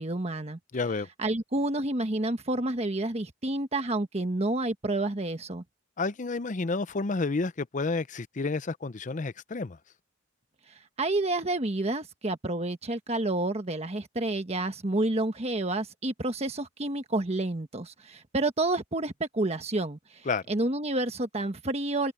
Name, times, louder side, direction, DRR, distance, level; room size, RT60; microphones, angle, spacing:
voice 1, 0.0-0.6 1.2-5.6 10.7-22.1, right 2 dB, 35° right, 1.3 m, -29 dB
voice 2, 0.7-1.1 6.0-9.8 20.3-20.4, left 3 dB, 40° left, 0.6 m, -30 dB
head